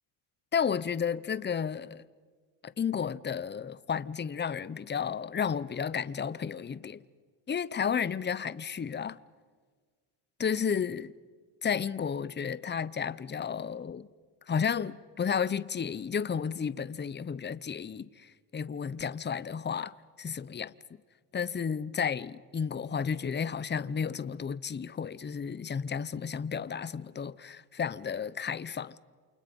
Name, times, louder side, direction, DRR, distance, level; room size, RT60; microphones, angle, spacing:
voice 1, 0.5-2.0 2.6-7.0 7.5-9.2 10.4-11.1 11.6-14.1 14.5-20.7 21.3-29.0, left 7 dB, 20° left, 0.9 m, -32 dB
29.0 x 28.5 x 5.4 m
cardioid pair, 95°, 48 cm